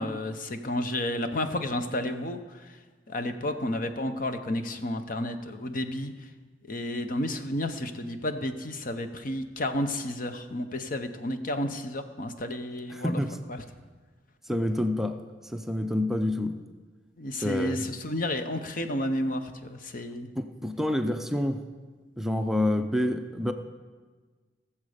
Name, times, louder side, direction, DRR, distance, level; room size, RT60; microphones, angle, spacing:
voice 1, 0.0-2.8 3.1-6.1 6.7-13.2 13.5-13.6 17.2-20.3, left 1 dB, 50° left, 8 dB, 0.9 m, -31 dB
voice 2, 12.9-13.4 14.5-15.2 15.4-16.6 17.4-17.8 20.4-21.6 22.2-23.5, left 1 dB, ahead, 6 dB, 0.5 m, -28 dB
18.5 x 7.3 x 5.1 m, 1.4 s
head